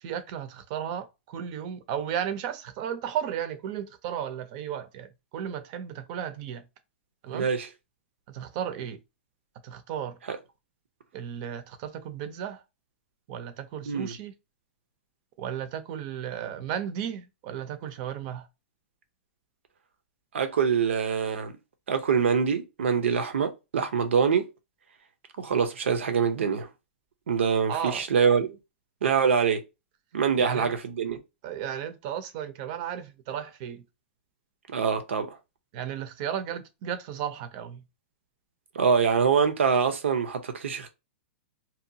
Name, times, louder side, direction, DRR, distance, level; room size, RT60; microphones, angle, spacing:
voice 1, 0.0-6.6 7.2-7.5 8.3-9.0 9.6-10.2 11.1-12.6 13.3-14.3 15.4-18.5 27.7-28.0 30.4-30.7 31.4-33.8 35.7-37.8, right 9 dB, 40° right, 0.5 m, -34 dB
voice 2, 7.3-7.7 10.3-10.4 13.9-14.1 20.3-21.5 21.9-24.4 25.4-26.7 27.3-28.6 29.0-29.6 30.1-31.2 34.7-35.4 38.7-40.9, right 6 dB, 90° right, 0.6 m, -24 dB
2.8 x 2.2 x 2.7 m
hypercardioid pair, 155°, 6 cm